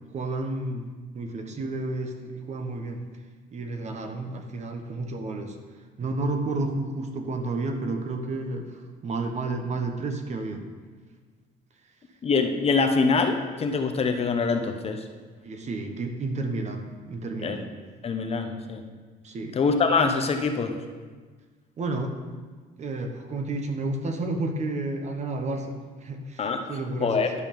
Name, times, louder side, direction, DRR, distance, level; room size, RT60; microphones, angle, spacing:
voice 1, 0.1-0.9 1.1-3.0 3.5-5.6 6.0-10.6 15.4-17.7 19.2-19.6 21.8-22.2 22.8-27.4, right 2 dB, 45° right, 5 dB, 1.1 m, -31 dB
voice 2, 12.2-15.0 17.4-17.7 18.0-18.8 19.5-20.7 26.4-26.6 27.0-27.4, left 4 dB, 35° left, 5 dB, 0.9 m, -24 dB
11.5 x 5.5 x 5.3 m, 1.4 s
cardioid pair, 110°, 17 cm